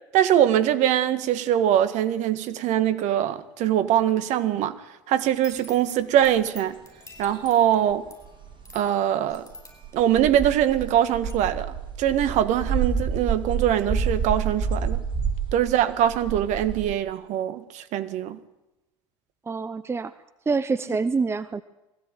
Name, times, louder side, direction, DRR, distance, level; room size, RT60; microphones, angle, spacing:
voice 1, 0.1-4.7 5.1-6.8 7.2-8.1 8.7-9.4 9.9-15.0 15.5-18.4 20.9-21.0, right 11 dB, 50° right, 1.8 m, -22 dB
sound 1, 5.3-10.9 11.3-11.4, left 3 dB, 15° left, 7.6 m, -49 dB
sound 2, 6.2-6.3 7.2-7.3 7.9-8.0 8.2-8.7 9.3-16.9, right 6 dB, 30° right, 3.1 m, -29 dB
voice 2, 19.5-20.1 20.5-21.6, right 4 dB, 15° right, 0.8 m, -26 dB
21.5 x 16.0 x 9.2 m
hypercardioid pair, 80°, 15 cm